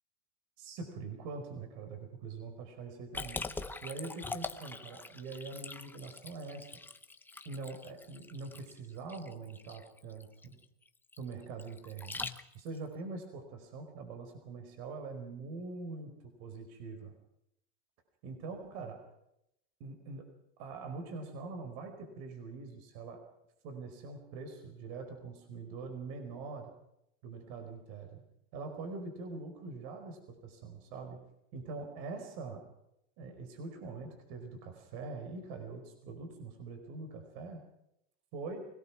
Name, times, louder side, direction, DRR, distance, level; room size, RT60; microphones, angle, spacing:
voice 1, 0.6-3.4 3.8-6.7 7.4-10.6 11.2-12.2 12.5-17.1 18.2-19.0 19.8-20.3 20.6-23.2 23.6-26.7 27.2-28.2 28.5-31.2 31.5-32.6 33.2-37.6 38.3-38.6, right 4 dB, 55° right, 5 dB, 4.8 m, -43 dB
Liquid, 3.1-12.8, left 3 dB, 5° left, 0.8 m, -43 dB
24.0 x 18.0 x 6.1 m, 0.80 s
supercardioid pair, 140°, 34 cm